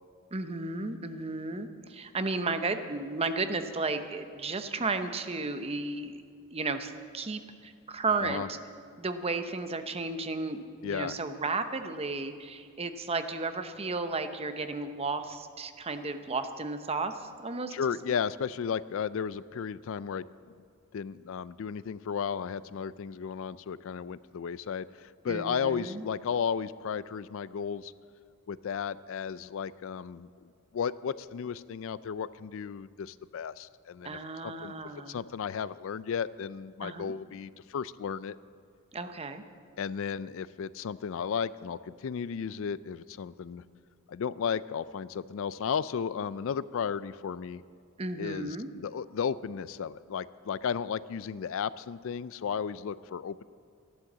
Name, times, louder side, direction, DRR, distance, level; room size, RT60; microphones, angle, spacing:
voice 1, 0.3-6.2 6.5-8.6 9.0-17.7 25.3-26.0 34.0-35.2 36.8-37.1 38.9-39.4 48.0-48.7, right 3 dB, 30° right, 8 dB, 0.8 m, -33 dB
voice 2, 10.8-11.1 17.7-20.3 20.9-27.9 28.5-34.7 35.1-38.4 39.8-43.6 44.1-47.6 48.2-53.4, left 7 dB, 65° left, 17 dB, 0.4 m, -34 dB
14.0 x 11.5 x 7.3 m, 2.3 s
head